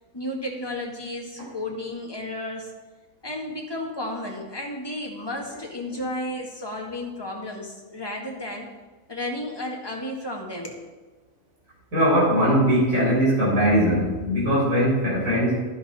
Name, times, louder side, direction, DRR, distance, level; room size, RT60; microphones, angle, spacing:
voice 1, 0.1-2.7 3.2-8.7 9.1-10.8, left 1 dB, 15° left, -1 dB, 1.8 m, -33 dB
voice 2, 11.9-15.7, equal, 70° right, -6 dB, 4.7 m, -20 dB
11.5 x 10.5 x 4.3 m, 1.2 s
omnidirectional pair, 1.5 m